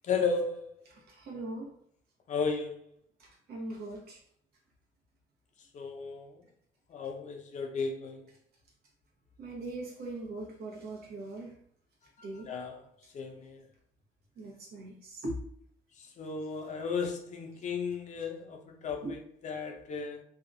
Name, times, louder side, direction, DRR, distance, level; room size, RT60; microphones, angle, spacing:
voice 1, 0.0-0.8 2.3-2.8 5.7-6.4 6.9-8.3 12.2-12.9 13.1-13.6 16.0-20.2, left 5 dB, 45° left, 0.6 m, -35 dB
voice 2, 1.1-1.7 3.2-4.2 9.4-11.5 12.2-12.5 14.4-15.3 19.0-19.1, right 2 dB, 70° right, 1.0 m, -40 dB
2.7 x 2.3 x 2.5 m
cardioid pair, 110°, 17 cm